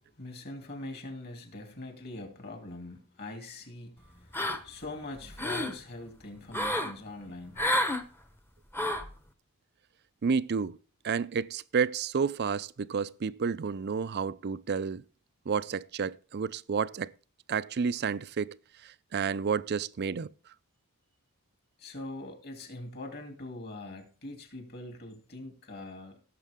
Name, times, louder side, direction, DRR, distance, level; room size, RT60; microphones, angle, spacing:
voice 1, 0.2-4.4 4.6-7.7 21.8-26.2, left 2 dB, 45° left, 3.0 m, -43 dB
sound 1, 4.3-4.9 5.2-5.8 6.5-6.9 7.6-8.0 8.7-9.1, left 1 dB, 10° left, 0.9 m, -29 dB
voice 2, 10.2-10.8 11.0-15.0 15.5-17.1 17.5-18.6 18.8-20.3, right 6 dB, 45° right, 0.4 m, -30 dB
17.0 x 7.5 x 3.6 m
head